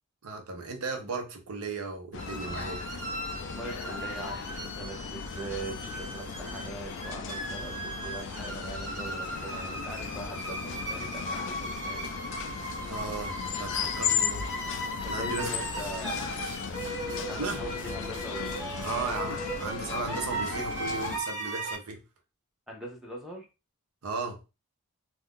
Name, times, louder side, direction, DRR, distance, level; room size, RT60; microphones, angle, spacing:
voice 1, 0.2-2.8 12.9-14.5 15.1-15.5 17.3-17.6 18.7-22.0 24.0-24.4, right 3 dB, 70° right, 0.7 m, -36 dB
sound 1, 2.1-21.2, left 6 dB, 55° left, 0.4 m, -36 dB
sound 2, 2.2-21.7, right 1 dB, 50° right, 1.2 m, -37 dB
voice 2, 3.4-12.2 15.0-16.2 17.2-18.5 22.7-23.5, right 1 dB, ahead, 0.7 m, -41 dB
sound 3, 15.3-19.4, right 3 dB, 35° right, 0.8 m, -51 dB
2.5 x 2.3 x 3.6 m
head